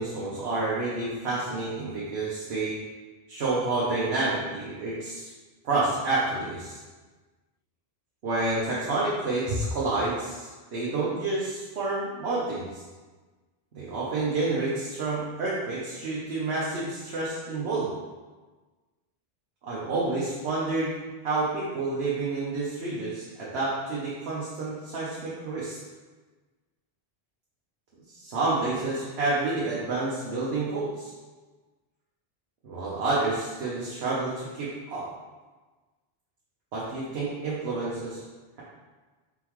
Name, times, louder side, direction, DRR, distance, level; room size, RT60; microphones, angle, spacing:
voice 1, 0.0-2.8 3.3-5.3 5.6-6.8 8.2-12.8 13.7-17.9 19.6-25.8 28.1-31.1 32.6-35.0 36.7-38.2, right 3 dB, 85° right, -7 dB, 1.1 m, -29 dB
4.2 x 3.8 x 3.0 m, 1.3 s
omnidirectional pair, 1.1 m